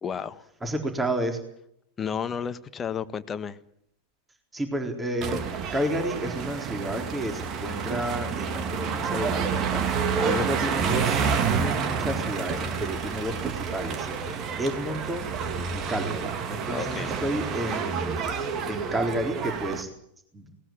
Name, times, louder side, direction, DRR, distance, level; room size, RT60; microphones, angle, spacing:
voice 1, 0.0-0.5 2.0-3.6 10.2-10.5 16.7-17.1 18.6-18.7, left 7 dB, 20° left, 11 dB, 1.4 m, -32 dB
voice 2, 0.6-1.4 4.5-5.4 5.7-11.2 11.5-15.3 15.7-19.9 20.3-20.5, right 1 dB, 10° right, 5 dB, 4.0 m, -31 dB
sound 1, 5.2-19.8, right 6 dB, 35° right, 2.6 m, -29 dB
19.5 x 19.0 x 9.2 m, 0.72 s
figure-of-eight pair, 90°, 0 cm